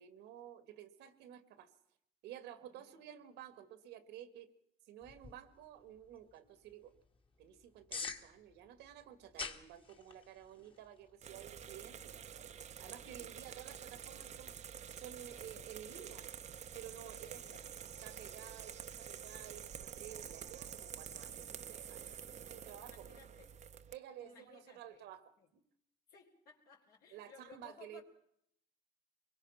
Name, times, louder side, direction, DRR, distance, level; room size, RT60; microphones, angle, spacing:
voice 1, 0.0-1.7 2.2-4.5 4.8-6.9 7.4-12.5 12.8-14.5 14.9-16.3 16.7-17.4 18.0-22.0 22.5-23.1 23.9-25.6 27.1-28.0, right 11 dB, 85° right, 11 dB, 2.1 m, -53 dB
sound 1, 5.0-15.6, left 4 dB, 30° left, 1.9 m, -52 dB
sound 2, 11.2-23.9, right 8 dB, 45° right, 0.9 m, -49 dB
voice 2, 13.0-13.3 17.1-18.1 22.8-23.5 24.2-25.0 25.4-25.5 26.1-28.0, left 5 dB, 70° left, -2 dB, 4.1 m, -61 dB
24.0 x 22.5 x 5.8 m, 0.72 s
cardioid pair, 110°, 17 cm